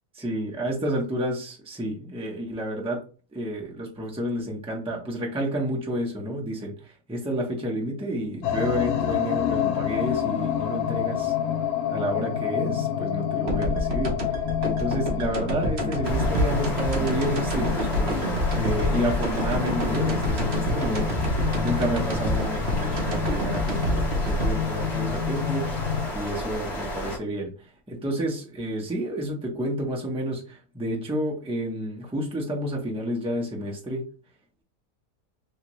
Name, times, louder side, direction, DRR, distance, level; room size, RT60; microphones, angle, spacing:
voice 1, 0.1-3.0 3.3-11.3 11.9-14.4 14.6-21.1 21.6-25.7 26.1-27.5 27.9-34.1, equal, 5° right, -2 dB, 0.4 m, -30 dB
sound 1, 8.4-26.1, left 9 dB, 70° left, 0.7 m, -29 dB
sound 2, 13.5-26.3, right 1 dB, 45° right, 0.8 m, -28 dB
sound 3, 16.0-27.2, equal, 45° left, 1.2 m, -32 dB
3.2 x 2.9 x 3.0 m, 0.37 s
omnidirectional pair, 1.8 m